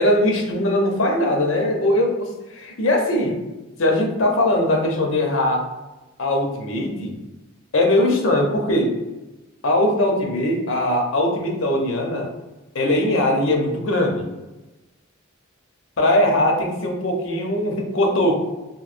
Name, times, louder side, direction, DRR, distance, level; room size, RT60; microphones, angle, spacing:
voice 1, 0.0-3.3 3.8-5.6 6.2-7.2 7.7-8.9 9.6-12.3 12.7-14.3 16.0-18.4, left 1 dB, 80° left, 2 dB, 0.6 m, -20 dB
3.0 x 2.7 x 2.5 m, 1.1 s
head